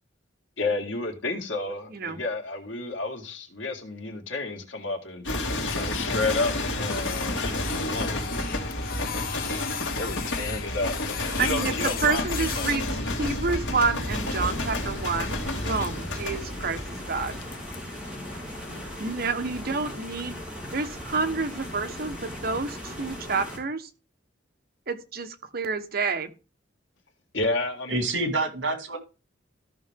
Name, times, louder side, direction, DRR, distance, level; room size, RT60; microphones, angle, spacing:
voice 1, 0.6-8.2 9.9-12.7 18.7-18.9 27.3-28.1, left 3 dB, 90° left, 2.1 m, -31 dB
sound 1, 5.2-22.5 22.8-23.2, left 1 dB, 70° left, 2.5 m, -31 dB
Printer, 5.7-17.8, left 7 dB, 50° left, 1.1 m, -38 dB
voice 2, 11.4-11.7 12.0-12.9 13.2-17.4 19.0-20.4 20.7-23.9 24.9-26.3, right 4 dB, 55° right, 1.2 m, -29 dB
sound 2, 14.1-23.6, equal, 5° right, 4.1 m, -39 dB
voice 3, 27.9-29.0, right 2 dB, 70° right, 2.4 m, -27 dB
13.5 x 5.8 x 3.6 m
head